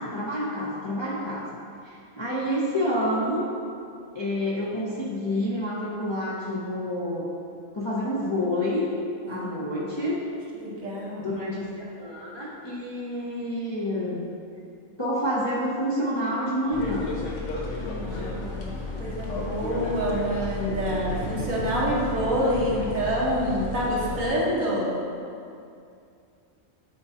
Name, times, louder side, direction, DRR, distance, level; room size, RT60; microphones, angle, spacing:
voice 1, 0.0-1.4 1.8-3.5 4.1-7.3 7.7-8.9 9.3-10.2 11.2-14.2 15.0-17.1, equal, 30° left, -6 dB, 0.6 m, -28 dB
voice 2, 10.5-11.4 17.8-18.7 19.0-24.9, equal, 70° right, -6 dB, 1.7 m, -27 dB
sound 1, 16.7-24.3, left 2 dB, 65° left, 1.1 m, -33 dB
8.5 x 4.6 x 2.8 m, 2.5 s
omnidirectional pair, 1.5 m